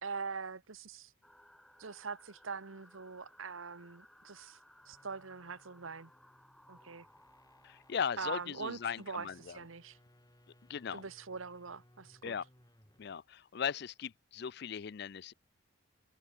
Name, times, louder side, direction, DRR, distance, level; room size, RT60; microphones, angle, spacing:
voice 1, 0.0-1.1 1.8-4.6 4.9-6.1 6.7-7.1 8.2-10.0 10.9-12.4, right 5 dB, 90° right, 1.2 m, -43 dB
sound 1, 1.2-9.8, equal, ahead, 6.0 m, -63 dB
sound 2, 4.7-13.2, left 1 dB, 20° left, 7.6 m, -66 dB
voice 2, 7.6-9.6 10.7-11.0 12.2-12.5 13.0-15.3, left 7 dB, 55° left, 0.4 m, -38 dB
open air
head